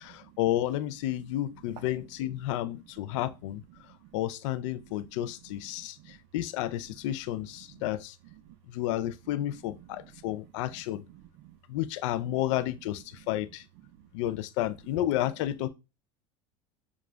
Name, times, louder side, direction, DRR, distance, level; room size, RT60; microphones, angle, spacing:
voice 1, 0.0-3.9 4.1-8.2 8.7-11.0 11.7-13.6 14.1-15.7, left 13 dB, 75° left, 0.4 m, -31 dB
voice 2, 3.8-4.2 5.2-5.3 5.7-6.2 7.7-7.9 8.3-8.4 9.3-9.4 9.8-10.3 10.7-11.6 13.2-13.3 14.0-14.1, right 13 dB, 65° right, 0.5 m, -53 dB
7.0 x 2.4 x 2.2 m
supercardioid pair, 105°, 16 cm